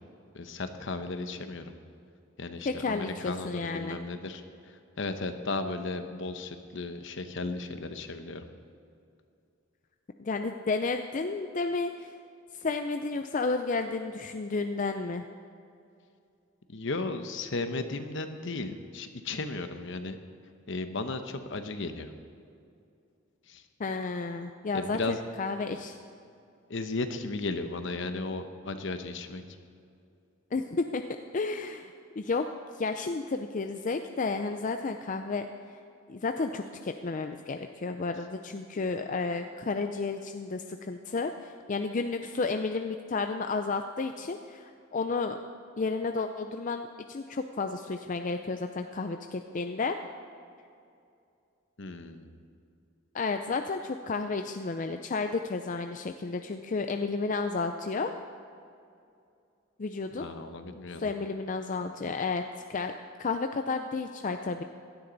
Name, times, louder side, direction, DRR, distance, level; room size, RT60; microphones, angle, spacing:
voice 1, 0.3-1.7 2.4-4.4 5.0-8.5 16.7-20.2 20.7-22.1 23.5-23.6 24.7-25.2 26.7-29.4 51.8-52.3 60.1-61.0, left 3 dB, 65° left, 8 dB, 0.9 m, -35 dB
voice 2, 2.6-4.0 10.2-12.1 12.6-15.2 23.8-25.9 30.5-31.0 31.3-32.5 32.8-35.5 36.1-45.4 45.8-50.0 53.1-58.1 59.8-60.3 61.0-62.4 62.7-62.9 63.2-64.6, left 4 dB, 40° left, 6 dB, 0.5 m, -32 dB
16.5 x 12.0 x 4.0 m, 2.5 s
head